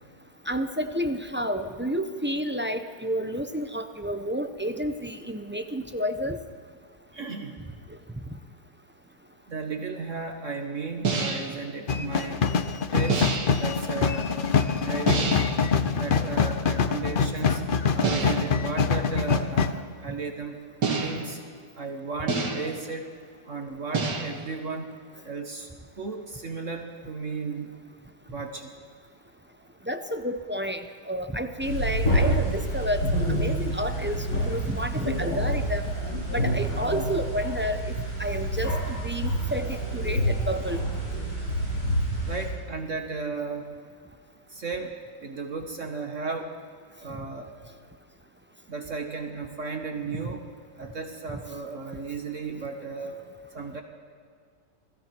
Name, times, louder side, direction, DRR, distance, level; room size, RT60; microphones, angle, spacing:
voice 1, 0.5-6.4 29.9-35.9 36.3-37.9 38.2-40.8, equal, 10° right, 7 dB, 0.6 m, -30 dB
voice 2, 7.1-7.6 9.5-12.4 12.9-13.3 13.5-14.3 14.8-15.5 15.9-17.6 18.0-20.6 21.0-21.4 21.8-23.0 23.5-24.9 25.3-25.7 26.0-27.7 28.3-28.7 42.2-43.7 44.5-46.5 47.0-47.5 48.7-50.5 50.8-53.2 53.5-53.8, right 4 dB, 45° right, 3 dB, 1.9 m, -34 dB
sound 1, 11.0-11.6 13.1-13.7 15.1-15.6 18.0-18.6 20.8-21.4 22.3-22.9 23.9-24.5, right 4 dB, 70° right, 2.7 m, -28 dB
sound 2, 11.9-19.7, left 5 dB, 45° left, 0.6 m, -25 dB
men working in the basement, 31.6-42.5, equal, 85° left, 8.6 m, -27 dB
29.5 x 20.5 x 4.7 m, 2.1 s
omnidirectional pair, 1.9 m